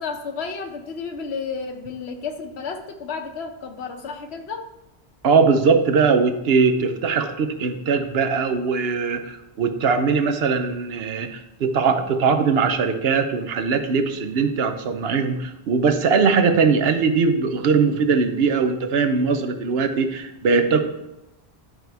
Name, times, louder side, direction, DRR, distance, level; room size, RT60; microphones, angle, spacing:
voice 1, 0.0-4.6, left 5 dB, 85° left, 5 dB, 1.1 m, -32 dB
voice 2, 5.2-20.8, right 5 dB, 70° right, 8 dB, 0.9 m, -20 dB
11.0 x 4.5 x 3.4 m, 0.91 s
omnidirectional pair, 1.1 m